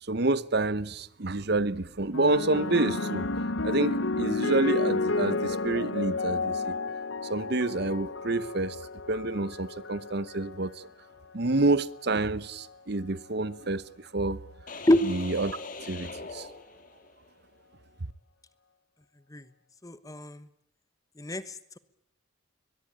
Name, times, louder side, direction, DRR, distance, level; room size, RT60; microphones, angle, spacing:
voice 1, 0.0-3.3 3.6-6.8 7.3-8.8 9.1-10.9 11.3-14.4 15.1-16.5, right 2 dB, 50° right, 0.9 m, -28 dB
sound 1, 2.1-10.7 11.6-12.0, left 3 dB, 65° left, 1.0 m, -31 dB
sound 2, 14.7-17.3, left 4 dB, 40° left, 2.1 m, -41 dB
voice 2, 19.8-20.5 21.2-21.8, left 1 dB, 15° left, 1.1 m, -26 dB
22.5 x 22.0 x 8.8 m
head